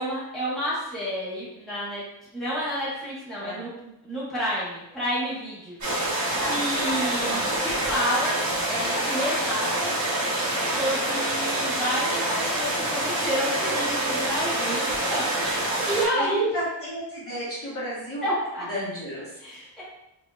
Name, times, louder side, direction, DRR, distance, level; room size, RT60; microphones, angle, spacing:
voice 1, 0.0-2.0 2.3-3.7 4.0-6.1 6.5-8.4 8.7-9.9 10.4-16.5 18.2-18.6 19.4-19.8, equal, ahead, -10 dB, 1.2 m, -30 dB
sound 1, 5.8-16.1, right 1 dB, 40° right, 1.1 m, -26 dB
voice 2, 6.3-6.9 7.2-7.5 14.4-15.3 16.1-18.3 18.7-19.4, equal, 30° left, -9 dB, 1.2 m, -34 dB
4.2 x 2.8 x 2.4 m, 0.84 s
wide cardioid pair, 165°, 46 cm